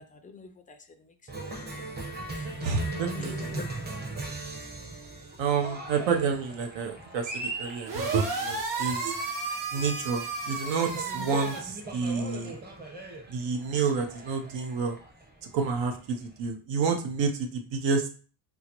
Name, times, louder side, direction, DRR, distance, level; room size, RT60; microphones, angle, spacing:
voice 1, 0.0-1.9 2.3-3.7 4.1-4.2, left 4 dB, 20° left, 6 dB, 0.3 m, -47 dB
Cheering, 1.3-16.5, right 2 dB, 20° right, 0.8 m, -39 dB
voice 2, 2.6-3.5 5.4-9.2 9.7-12.6 13.3-15.0 15.5-18.1, right 5 dB, 80° right, 4 dB, 0.8 m, -29 dB
sound 1, 7.8-11.6, right 3 dB, 45° right, 1.2 m, -33 dB
3.8 x 2.0 x 2.9 m, 0.38 s
cardioid pair, 110°, 45 cm